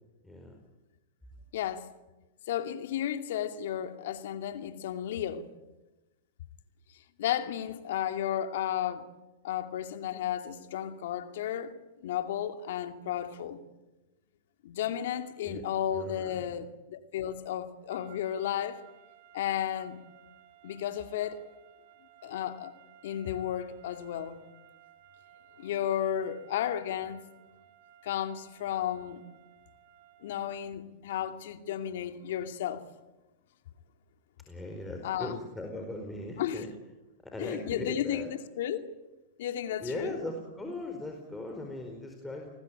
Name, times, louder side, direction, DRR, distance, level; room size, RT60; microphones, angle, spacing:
voice 1, 0.2-0.6 15.4-15.6 15.9-16.5 34.5-36.7 37.2-38.3 39.8-42.5, left 1 dB, 10° left, 4.6 m, -39 dB
voice 2, 1.5-1.9 2.5-5.5 7.2-9.1 9.4-11.7 12.0-13.6 14.6-18.8 19.3-20.0 20.6-21.4 22.2-22.7 23.0-24.4 25.6-27.2 28.0-29.2 30.2-32.9 35.0-35.4 36.4-36.6 37.4-38.8 39.4-40.2, left 10 dB, 65° left, 2.4 m, -33 dB
sound 1, 17.9-30.7, right 12 dB, 60° right, 3.4 m, -58 dB
29.5 x 20.5 x 9.0 m
hypercardioid pair, 110°, 0 cm